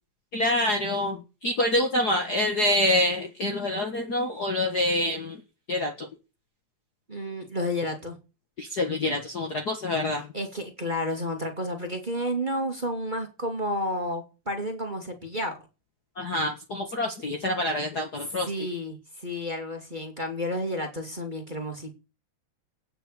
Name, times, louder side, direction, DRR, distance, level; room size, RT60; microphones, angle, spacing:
voice 1, 0.3-5.4 5.7-6.1 8.6-10.3 16.2-18.5, left 1 dB, 40° left, 3 dB, 1.7 m, -26 dB
voice 2, 7.1-8.2 10.3-15.6 18.4-22.0, left 1 dB, 15° right, 3 dB, 2.3 m, -31 dB
17.5 x 5.9 x 6.8 m, 0.31 s
omnidirectional pair, 3.4 m